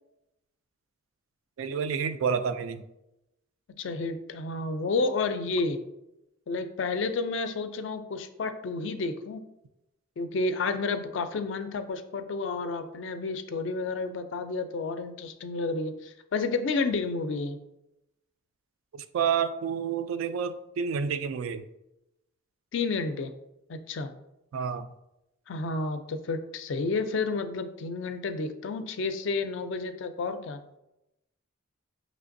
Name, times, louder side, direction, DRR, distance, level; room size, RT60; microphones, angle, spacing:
voice 1, 1.6-2.8 18.9-21.6 24.5-24.9, right 6 dB, 75° right, 0.3 m, -29 dB
voice 2, 3.8-5.8 6.5-9.4 10.2-17.6 22.7-23.3 23.7-24.1 25.5-30.6, left 3 dB, 60° left, 0.4 m, -31 dB
5.7 x 3.1 x 2.6 m
head